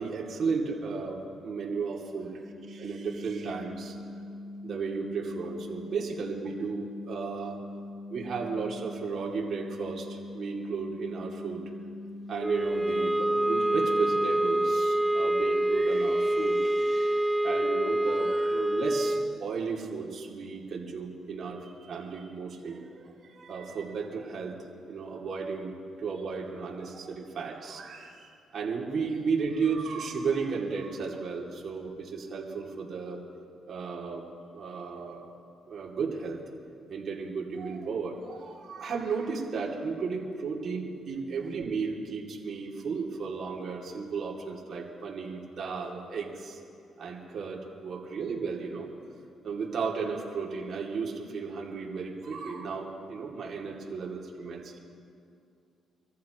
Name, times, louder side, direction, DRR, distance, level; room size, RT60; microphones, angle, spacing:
voice 1, 0.0-2.3 2.7-3.9 4.6-7.6 8.1-11.6 12.3-24.6 24.9-33.2 33.7-34.2 34.5-35.3 35.7-36.4 36.9-46.6 47.0-48.9 49.4-54.8, right 5 dB, 55° right, -2 dB, 2.8 m, -34 dB
sound 1, 2.4-14.1, left 1 dB, 70° left, 4.2 m, -42 dB
sound 2, 12.4-19.4, right 1 dB, 5° right, 0.5 m, -26 dB
25.5 x 14.5 x 3.2 m, 2.4 s
cardioid pair, 90°, 0 cm